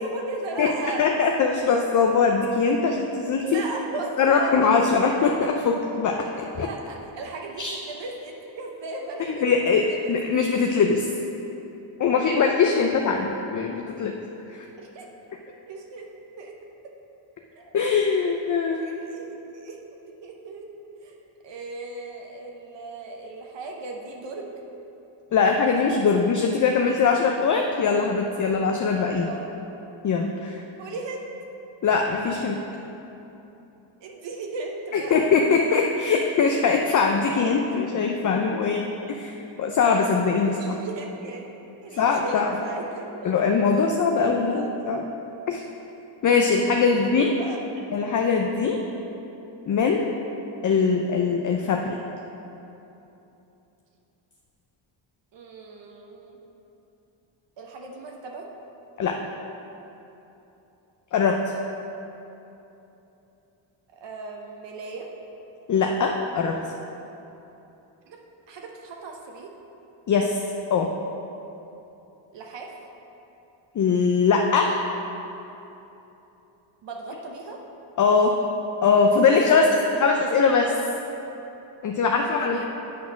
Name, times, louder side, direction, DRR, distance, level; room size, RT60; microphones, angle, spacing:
voice 1, 0.0-1.0 1.6-1.8 2.8-3.0 3.4-4.8 6.3-9.5 9.8-10.2 14.8-15.1 15.5-16.1 16.4-16.6 17.5-17.8 18.6-19.8 20.1-20.7 21.0-21.2 21.4-24.5 29.3-29.5 30.8-31.3 34.0-35.3 40.4-41.5 41.8-43.4 43.8-44.8 46.8-47.8 55.3-56.4 57.6-58.5 63.9-65.1 68.1-68.2 68.5-69.5 72.3-72.7 76.8-77.6 82.1-82.7, right 3 dB, 60° right, 1 dB, 0.9 m, -36 dB
voice 2, 1.0-3.6 4.2-6.2 6.6-6.7 7.6-7.7 9.3-9.8 10.1-11.1 12.0-14.1 14.5-14.7 17.7-18.8 25.3-29.3 30.0-30.6 31.8-32.6 34.9-39.3 39.6-40.5 42.0-42.5 43.2-45.0 45.5-45.6 46.2-47.3 47.9-48.8 49.7-50.1 50.6-52.0 59.0-59.2 61.1-61.4 65.7-66.6 70.1-70.4 70.7-70.9 73.7-74.8 78.0-78.3 78.8-80.8 81.8-82.6, left 5 dB, 40° left, 2 dB, 0.5 m, -21 dB
8.4 x 4.3 x 5.8 m, 3.0 s
cardioid pair, 90°, 48 cm